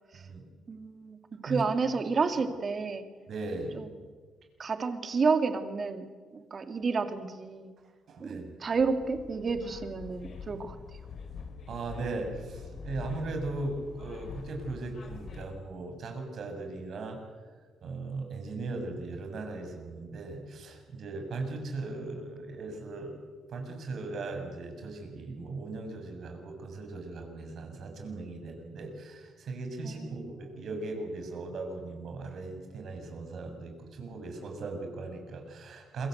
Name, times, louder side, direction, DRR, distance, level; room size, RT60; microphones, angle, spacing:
voice 1, 0.1-0.4 1.5-1.6 3.3-3.7 8.1-8.5 11.7-17.2 17.8-23.2 23.5-36.1, right 3 dB, 60° right, 4 dB, 7.0 m, -38 dB
voice 2, 0.7-3.0 3.7-3.9 4.6-6.0 6.3-7.7 8.2-10.8 29.8-30.3, right 4 dB, 40° right, 8 dB, 2.6 m, -30 dB
sound 1, 8.8-15.5, left 5 dB, 55° left, 4.1 m, -44 dB
28.0 x 22.5 x 8.1 m, 1.5 s
cardioid pair, 90°, 0 cm